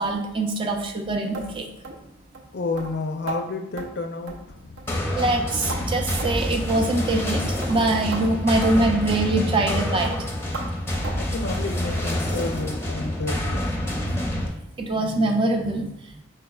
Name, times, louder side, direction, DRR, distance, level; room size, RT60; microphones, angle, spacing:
voice 1, 0.0-1.7 5.2-10.2 14.8-16.2, right 2 dB, 25° right, 3 dB, 0.4 m, -24 dB
sound 1, 1.3-1.5 1.8-2.0 2.3-2.5 2.8-2.9 3.3-3.4 3.8-3.9 4.3-4.5 4.8-4.9 5.2-5.8 6.2-6.4 6.7-6.8 7.2-7.3 7.6-7.8 8.1-8.2 8.6-8.7 9.1-9.3 9.6-9.8 10.0-10.2 10.5-10.7 11.0-11.2 11.5-11.7 12.0-12.2 12.5-12.7 13.0-13.1 13.5-13.6, right 3 dB, 85° right, 0.7 m, -35 dB
voice 2, 2.5-5.0 11.2-13.8, left 3 dB, 55° left, 5 dB, 0.5 m, -31 dB
sound 2, 4.9-14.5, left 1 dB, 10° left, 0.6 m, -27 dB
4.9 x 4.5 x 2.3 m, 0.83 s
head